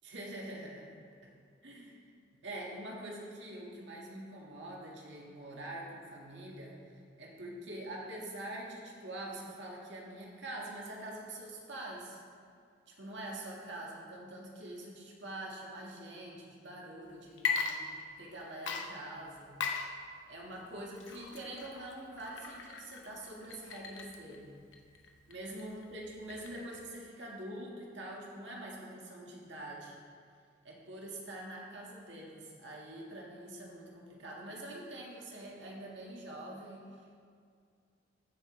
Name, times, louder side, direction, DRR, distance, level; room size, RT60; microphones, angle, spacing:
voice 1, 0.0-1.3 1.6-2.1 2.4-12.2 12.9-19.6 20.3-24.6 25.3-29.9 30.6-37.0, right 1 dB, 65° right, -2 dB, 1.9 m, -45 dB
Water / Liquid, 17.3-18.3 18.7-26.9, left 5 dB, 75° left, 0.9 m, -39 dB
14.5 x 7.6 x 3.3 m, 2.2 s
head